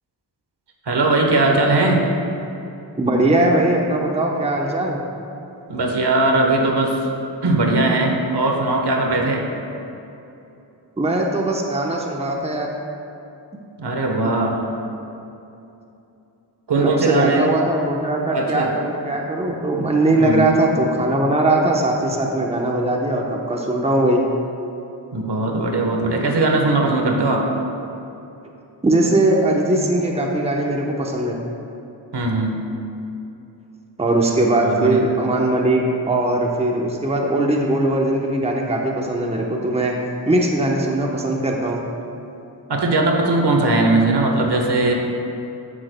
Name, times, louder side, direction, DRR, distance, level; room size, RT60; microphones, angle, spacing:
voice 1, 0.8-2.1 5.7-7.0 7.4-9.5 13.8-14.7 16.7-17.5 18.3-18.7 20.1-20.5 25.1-27.5 32.1-32.6 34.6-35.0 42.7-44.9, right 2 dB, 60° right, 1 dB, 1.2 m, -19 dB
voice 2, 3.0-5.0 11.0-12.7 16.8-24.2 28.8-31.4 34.0-40.0 40.3-41.8, right 1 dB, 15° right, 0 dB, 0.9 m, -20 dB
13.0 x 6.4 x 2.2 m, 2.8 s
cardioid pair, 50°, 45 cm